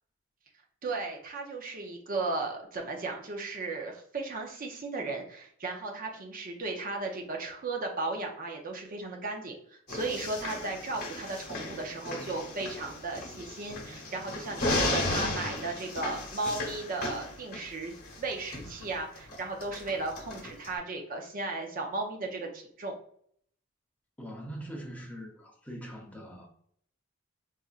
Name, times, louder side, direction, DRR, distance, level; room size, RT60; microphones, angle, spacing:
voice 1, 0.8-22.9, right 3 dB, 40° right, 2 dB, 0.5 m, -35 dB
sound 1, 9.9-20.7, left 2 dB, 45° left, 1.0 m, -35 dB
voice 2, 24.2-26.5, equal, 5° left, -1 dB, 0.6 m, -42 dB
4.1 x 2.5 x 2.4 m, 0.64 s
head